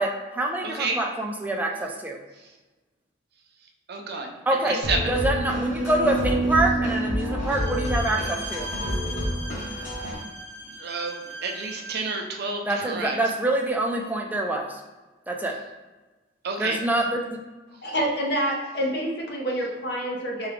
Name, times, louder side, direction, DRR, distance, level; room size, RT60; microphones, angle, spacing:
voice 1, 0.0-2.2 4.5-4.8 5.1-8.7 12.6-14.8 15.3-15.6 16.6-17.2, right 1 dB, 10° right, 0 dB, 0.4 m, -25 dB
voice 2, 0.6-1.0 3.9-4.3 4.6-5.1 10.8-11.2 11.4-13.2 16.4-16.8, right 3 dB, 60° right, 2 dB, 0.5 m, -29 dB
sound 1, 4.8-10.2, right 1 dB, 40° left, 1.4 m, -28 dB
Bowed string instrument, 7.4-12.3, equal, 10° left, 0.8 m, -38 dB
voice 3, 17.8-20.5, equal, 65° left, -1 dB, 0.8 m, -27 dB
4.6 x 2.3 x 3.3 m, 1.2 s
head